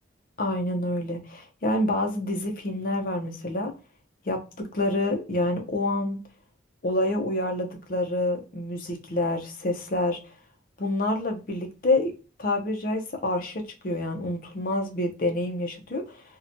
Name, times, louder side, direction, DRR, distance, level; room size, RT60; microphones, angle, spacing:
voice 1, 0.4-3.7 4.3-6.2 6.8-10.2 10.8-12.1 12.4-16.2, left 1 dB, 45° left, 0.5 m, -27 dB
2.7 x 2.1 x 2.5 m
head